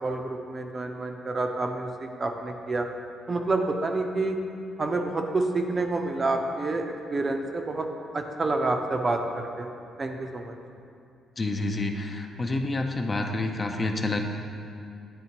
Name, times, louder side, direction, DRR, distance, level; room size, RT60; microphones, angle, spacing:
voice 1, 0.0-2.9 3.3-4.4 4.8-7.9 8.1-9.7 10.0-10.6, right 2 dB, 35° right, 4 dB, 0.5 m, -28 dB
voice 2, 11.4-14.2, left 2 dB, 30° left, 4 dB, 0.4 m, -28 dB
9.4 x 3.5 x 2.9 m, 2.4 s
cardioid pair, 90°, 0 cm